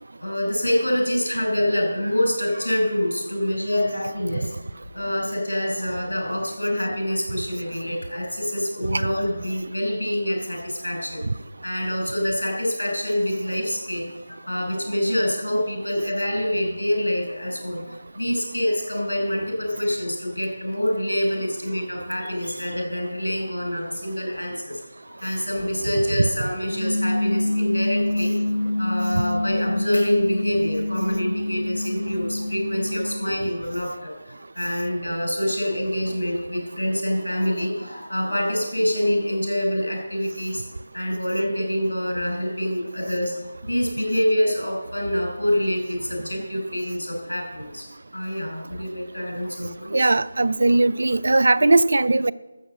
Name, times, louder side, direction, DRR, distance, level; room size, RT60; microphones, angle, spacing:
voice 1, 0.2-4.5 4.9-11.2 11.6-28.3 28.8-40.6 40.9-43.4 43.6-47.9 48.1-50.1, equal, 80° left, 0 dB, 6.0 m, -26 dB
sound 1, 26.7-33.1, left 1 dB, 25° left, 2.5 m, -26 dB
voice 2, 49.9-52.3, right 2 dB, 65° right, 20 dB, 0.4 m, -19 dB
13.0 x 7.6 x 7.8 m, 1.1 s
figure-of-eight pair, 160°, 0 cm